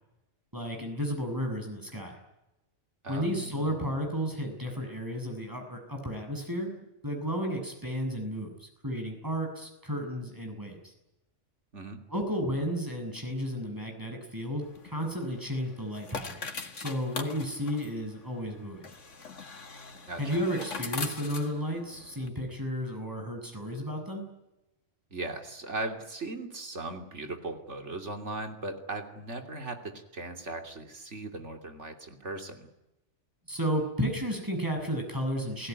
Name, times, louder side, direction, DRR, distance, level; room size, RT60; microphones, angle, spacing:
voice 1, 0.5-2.2 3.1-10.8 12.1-18.9 20.2-24.2 33.5-35.7, equal, 15° right, 2 dB, 7.4 m, -33 dB
voice 2, 3.0-4.0 11.7-12.0 20.1-20.4 25.1-32.7, right 2 dB, 70° right, 5 dB, 3.4 m, -38 dB
sound 1, 14.6-22.3, left 4 dB, 80° left, 2.2 m, -42 dB
29.5 x 17.0 x 9.6 m, 0.94 s
omnidirectional pair, 1.2 m